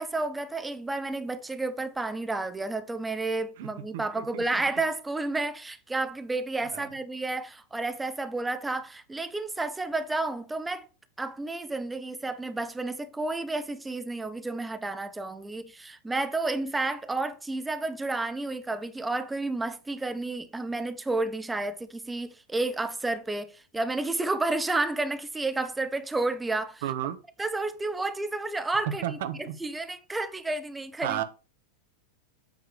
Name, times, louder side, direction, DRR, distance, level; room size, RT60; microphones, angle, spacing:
voice 1, 0.0-10.9 11.2-26.8 27.4-31.2, right 2 dB, 10° right, 0.7 m, -31 dB
voice 2, 3.9-4.6 6.7-6.9 26.8-27.2 29.0-29.5 31.0-31.2, right 11 dB, 55° right, 1.1 m, -33 dB
8.4 x 3.7 x 6.7 m
figure-of-eight pair, 90°, 0 cm